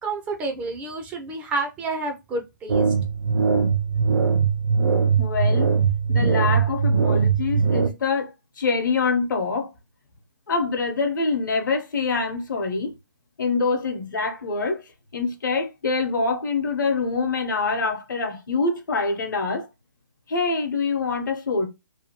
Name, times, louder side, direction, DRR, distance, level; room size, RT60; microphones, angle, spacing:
voice 1, 0.0-2.9, right 3 dB, 10° right, 0.3 m, -29 dB
sound 1, 2.7-7.9, right 5 dB, 70° right, 0.5 m, -21 dB
voice 2, 5.0-5.7 6.1-9.7 10.5-12.9 13.4-14.8 15.1-19.7 20.3-21.7, left 4 dB, 70° left, 0.9 m, -25 dB
2.7 x 2.3 x 2.8 m
hypercardioid pair, 145°, 11 cm